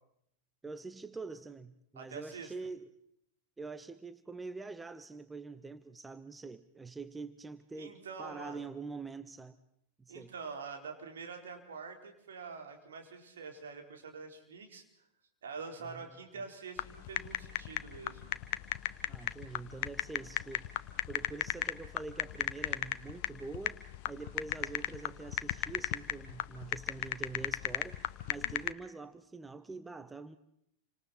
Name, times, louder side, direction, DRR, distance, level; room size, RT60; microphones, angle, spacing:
voice 1, 0.6-2.9 3.6-9.6 10.0-10.3 15.8-16.1 16.3-16.4 19.1-20.8 21.1-30.4, right 4 dB, 10° right, 0.9 m, -45 dB
voice 2, 2.0-2.5 7.8-8.7 10.1-14.8 15.4-18.3, right 5 dB, 65° right, 4.4 m, -45 dB
sound 1, 16.8-28.7, left 16 dB, 50° left, 1.0 m, -36 dB
29.0 x 25.5 x 4.4 m
figure-of-eight pair, 95°, 0 cm